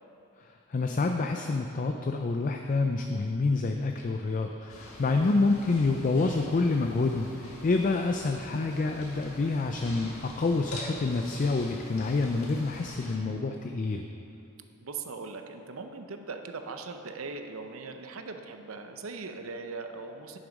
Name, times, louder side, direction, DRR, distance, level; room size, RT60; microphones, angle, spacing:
voice 1, 0.7-14.1, left 3 dB, 35° left, 4 dB, 0.4 m, -27 dB
sound 1, 4.7-13.2, left 1 dB, 80° left, 2.0 m, -45 dB
voice 2, 14.8-20.4, right 4 dB, 70° right, 6 dB, 0.7 m, -40 dB
10.0 x 7.1 x 5.2 m, 2.7 s
head